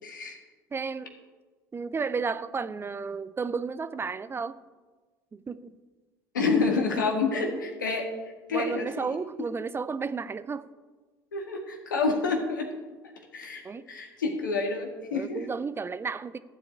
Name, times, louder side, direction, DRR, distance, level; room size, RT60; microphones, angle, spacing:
voice 1, 0.0-0.4 6.3-8.0 8.5-9.0 11.3-12.7 13.3-13.6 13.9-15.4, left 4 dB, 90° left, 3 dB, 1.7 m, -28 dB
voice 2, 0.7-1.1 1.7-4.6 5.3-5.8 8.5-10.6 13.6-13.8 15.1-16.4, right 5 dB, 25° right, 14 dB, 0.5 m, -32 dB
12.5 x 4.8 x 8.3 m, 1.3 s
hypercardioid pair, 70°, 10 cm